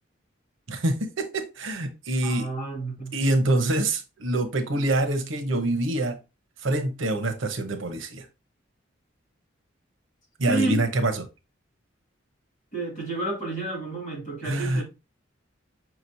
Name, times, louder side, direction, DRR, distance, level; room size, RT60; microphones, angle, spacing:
voice 1, 0.7-2.5 3.1-6.2 6.6-8.3 10.4-11.2 14.4-14.8, right 2 dB, 80° right, 0.9 m, -25 dB
voice 2, 2.2-3.1 10.5-10.8 12.7-14.8, right 2 dB, 40° left, 2.1 m, -30 dB
5.9 x 3.0 x 2.6 m
head